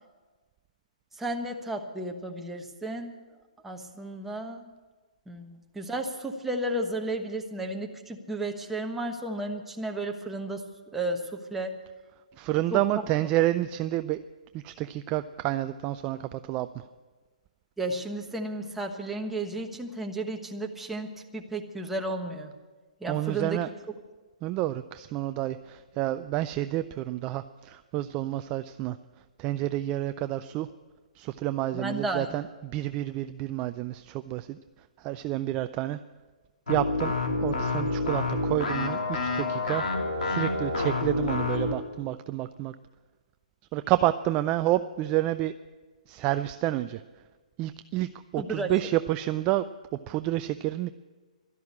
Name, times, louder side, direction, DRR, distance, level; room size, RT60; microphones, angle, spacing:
voice 1, 1.2-3.1 3.6-4.7 5.3-10.6 10.9-11.8 12.7-12.8 17.8-22.5 23.0-23.6 31.7-32.5 48.4-48.7, right 2 dB, 5° right, 2 dB, 1.2 m, -33 dB
voice 2, 12.4-14.2 14.5-16.7 23.1-23.7 24.4-29.0 29.4-30.7 31.2-34.6 35.0-36.0 36.7-37.1 37.4-39.8 40.2-42.7 43.7-45.5 46.1-47.0 47.6-49.7 50.1-50.9, right 15 dB, 25° right, 11 dB, 0.4 m, -29 dB
sound 1, 36.7-41.8, left 3 dB, 90° left, 2.7 m, -28 dB
12.5 x 12.0 x 8.4 m, 1.3 s
hypercardioid pair, 145°, 4 cm